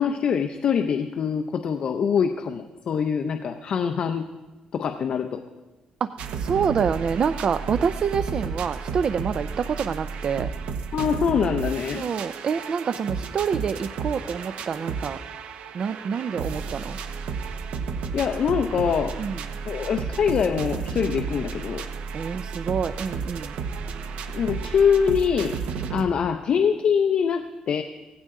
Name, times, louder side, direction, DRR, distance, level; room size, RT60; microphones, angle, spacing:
voice 1, 0.0-4.3 4.7-5.4 10.9-12.0 18.1-19.2 19.6-21.8 24.3-25.6 25.9-27.8, left 7 dB, 50° left, 7 dB, 0.6 m, -24 dB
sound 1, 6.2-26.1, right 5 dB, 85° right, 0.9 m, -32 dB
voice 2, 6.3-10.5 11.9-15.2 15.7-17.0 19.2-19.4 22.1-23.5, right 6 dB, 45° right, 11 dB, 0.4 m, -27 dB
18.0 x 15.5 x 3.7 m, 1.2 s
cardioid pair, 145°, 2 cm